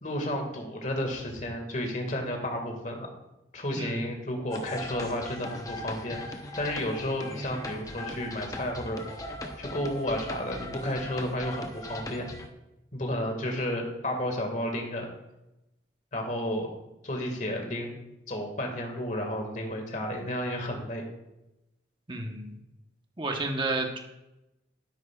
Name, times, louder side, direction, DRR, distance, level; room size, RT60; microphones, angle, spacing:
voice 1, 0.0-3.1 3.5-9.3 9.6-12.3 12.9-15.1 16.1-16.7 17.0-18.0 18.3-21.0, left 1 dB, 45° left, 2 dB, 2.0 m, -32 dB
voice 2, 3.8-4.1 22.1-22.5 23.2-24.0, right 2 dB, 25° right, 2 dB, 1.1 m, -31 dB
sound 1, 4.5-12.5, left 1 dB, 20° left, 0.9 m, -39 dB
12.5 x 10.5 x 2.4 m, 0.93 s
head